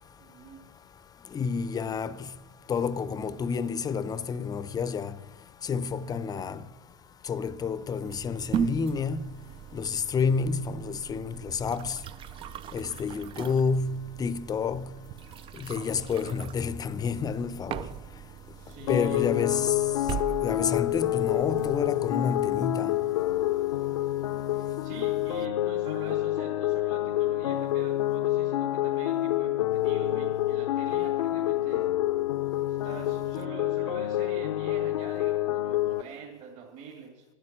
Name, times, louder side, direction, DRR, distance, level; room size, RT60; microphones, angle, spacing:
voice 1, 0.2-0.6 12.8-13.1 18.5-19.3 24.5-31.9 32.7-37.2, right 4 dB, 45° right, 2.7 m, -44 dB
voice 2, 1.3-2.2 2.7-5.1 5.6-6.6 7.3-9.2 9.7-12.0 12.7-14.9 15.6-17.9 18.9-19.7 20.4-23.0, left 5 dB, 20° left, 0.6 m, -29 dB
sound 1, 8.0-21.9, right 9 dB, 30° right, 0.4 m, -39 dB
sound 2, 18.9-36.0, left 14 dB, 75° left, 0.6 m, -28 dB
12.0 x 9.4 x 7.5 m
hypercardioid pair, 100°, 18 cm